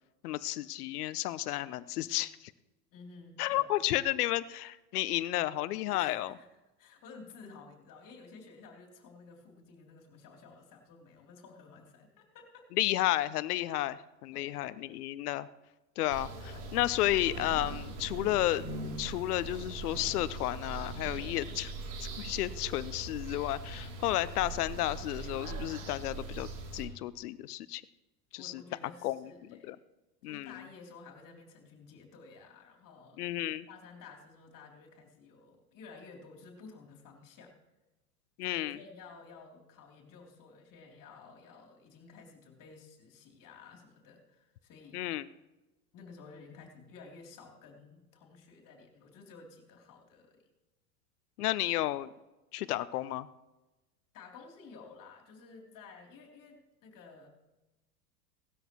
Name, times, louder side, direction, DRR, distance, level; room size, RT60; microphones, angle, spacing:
voice 1, 0.2-2.5 3.4-6.3 12.7-15.5 16.0-18.6 19.0-21.7 22.0-26.5 26.7-27.8 28.3-28.6 29.0-29.8 30.2-30.5 33.2-33.7 38.4-38.8 44.9-45.3 51.4-52.1 52.5-53.3, left 15 dB, 65° left, 17 dB, 0.8 m, -32 dB
voice 2, 2.9-3.7 5.9-6.5 6.8-12.7 14.3-14.6 16.1-16.4 28.3-29.7 30.2-33.4 33.7-37.5 38.4-45.0 45.9-50.4 54.1-57.3, left 4 dB, 40° left, 1 dB, 3.3 m, -53 dB
sound 1, 16.1-26.9, right 2 dB, 60° right, 3.1 m, -41 dB
18.0 x 13.0 x 3.1 m, 1.0 s
hypercardioid pair, 90°, 49 cm